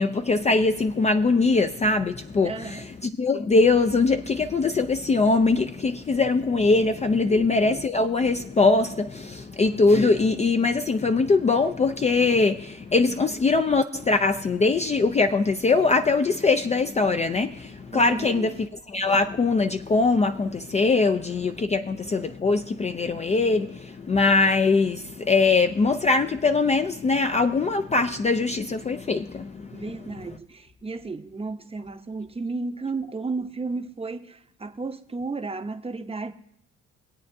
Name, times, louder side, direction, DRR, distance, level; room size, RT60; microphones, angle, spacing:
voice 1, 0.0-29.8, left 3 dB, 25° left, 0.4 m, -22 dB
voice 2, 2.4-2.9 7.2-7.5 17.9-18.5 29.7-36.3, right 3 dB, 20° right, 0.7 m, -33 dB
24.5 x 8.4 x 2.7 m
cardioid pair, 90°, 30 cm